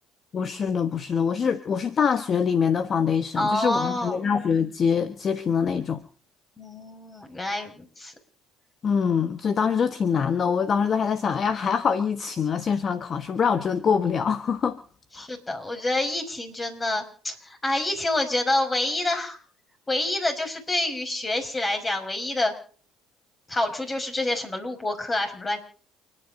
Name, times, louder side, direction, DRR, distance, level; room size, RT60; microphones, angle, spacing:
voice 1, 0.3-6.0 8.8-14.8 15.2-15.3, left 6 dB, 45° left, 1.3 m, -24 dB
voice 2, 3.4-4.2 6.6-8.1 15.1-19.4 19.9-22.5 23.5-25.6, left 2 dB, 25° left, 5.8 m, -27 dB
29.0 x 10.0 x 3.8 m
supercardioid pair, 75°, 0 cm